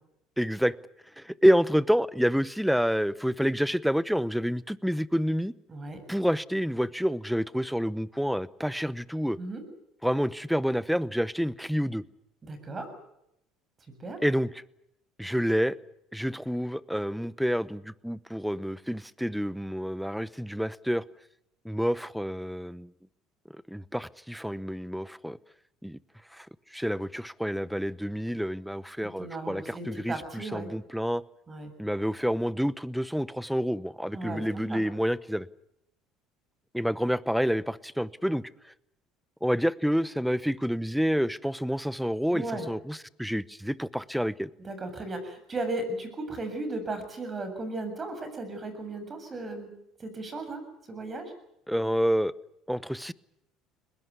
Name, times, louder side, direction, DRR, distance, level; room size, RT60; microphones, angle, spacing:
voice 1, 0.4-0.8 1.2-5.5 6.1-9.4 10.0-12.0 14.2-14.6 15.2-15.8 16.1-21.0 21.6-22.9 23.5-25.4 25.8-26.0 26.3-26.5 26.7-31.2 31.8-35.5 36.7-38.4 39.4-44.5 51.7-52.3 52.7-53.1, equal, ahead, 19 dB, 0.9 m, -28 dB
voice 2, 5.7-6.0 9.4-9.6 12.4-12.9 14.0-14.2 29.0-30.7 31.5-31.7 34.1-34.8 42.3-42.7 44.6-49.7 50.0-50.6 50.9-51.3, right 2 dB, 25° right, 9 dB, 7.3 m, -36 dB
23.0 x 21.0 x 8.3 m, 0.79 s
supercardioid pair, 105°, 0 cm